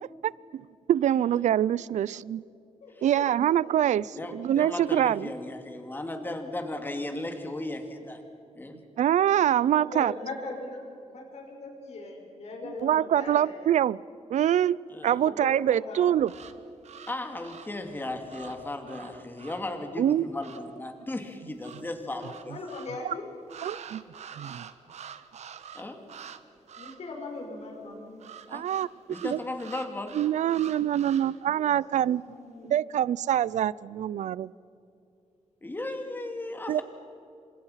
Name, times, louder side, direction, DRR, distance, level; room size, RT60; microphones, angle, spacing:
voice 1, 0.2-2.4 3.0-5.3 9.0-10.1 12.8-14.0 14.3-16.3 20.0-20.3 23.0-23.1 23.6-24.0 24.3-24.6 28.5-28.9 29.2-29.4 30.1-32.2 32.7-34.5 36.7-36.8, right 11 dB, 85° right, 22 dB, 0.5 m, -25 dB
voice 2, 2.8-3.8 9.6-13.7 15.1-16.2 22.5-23.3 26.7-28.2 31.5-31.8 32.3-32.8, left 3 dB, 65° left, 1 dB, 6.0 m, -40 dB
voice 3, 4.2-8.2 8.6-8.8 14.9-15.2 17.1-22.5 25.7-26.0 28.5-28.7 29.1-30.2 35.6-36.8, left 2 dB, 15° left, 5 dB, 2.6 m, -36 dB
sound 1, 16.2-20.8 21.6-23.0 23.5-26.4 26.7-27.1 28.2-31.5, right 8 dB, 70° right, 1.2 m, -47 dB
28.5 x 25.5 x 5.7 m, 2.6 s
wide cardioid pair, 135°, 12 cm